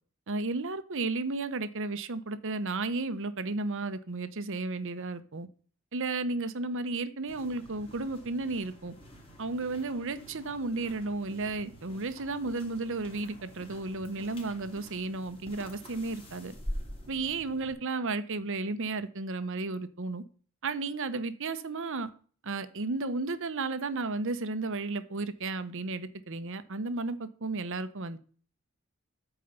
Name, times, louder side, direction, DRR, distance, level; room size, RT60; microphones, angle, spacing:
voice 1, 0.3-5.5 5.9-8.9 9.4-16.5 17.1-20.2 20.6-22.1 22.4-28.2, right 3 dB, 60° right, 0.9 m, -33 dB
sound 1, 7.3-17.7, equal, 25° left, 2.5 m, -46 dB
8.8 x 4.6 x 6.8 m
head